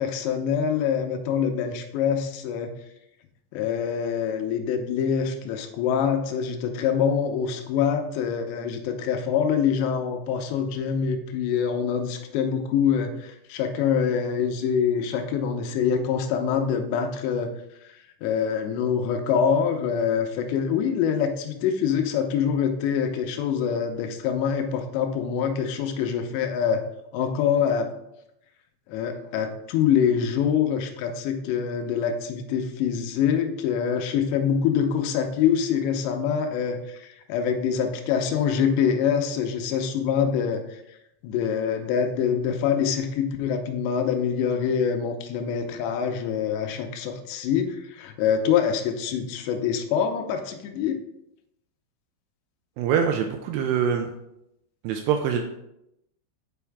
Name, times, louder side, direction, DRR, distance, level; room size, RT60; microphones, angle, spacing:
voice 1, 0.0-2.7 3.5-17.5 17.8-26.8 27.1-28.0 28.9-41.0 41.2-51.0, left 7 dB, 80° left, 5 dB, 2.8 m, -25 dB
voice 2, 52.8-54.1 54.8-55.4, right 7 dB, 85° right, 4 dB, 2.3 m, -24 dB
7.0 x 5.6 x 3.4 m, 0.83 s
omnidirectional pair, 5.3 m